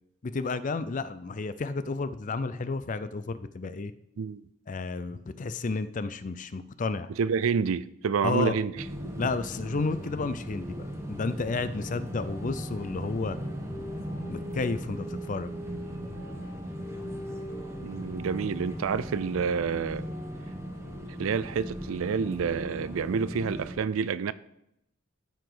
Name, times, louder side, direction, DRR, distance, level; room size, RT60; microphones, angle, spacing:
voice 1, 0.2-3.9 4.7-7.1 8.2-8.5 9.2-13.4 14.3-15.5, left 3 dB, 40° left, 0.4 m, -31 dB
voice 2, 7.2-8.8 17.8-20.1 21.2-24.3, right 6 dB, 80° right, 0.4 m, -28 dB
sound 1, 8.7-23.8, equal, 15° right, 1.0 m, -38 dB
13.5 x 4.8 x 3.9 m
head